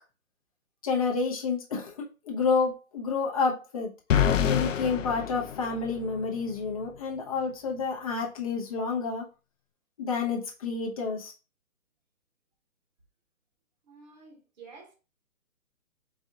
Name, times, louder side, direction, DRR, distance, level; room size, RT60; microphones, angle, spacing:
voice 1, 0.8-3.9 4.5-9.2 10.0-11.3, left 4 dB, 25° left, 0.8 m, -29 dB
sound 1, 4.1-6.2, left 9 dB, 60° left, 0.6 m, -26 dB
voice 2, 13.8-15.0, right 4 dB, 30° right, 1.3 m, -50 dB
4.4 x 2.5 x 3.5 m
hypercardioid pair, 155°, 43 cm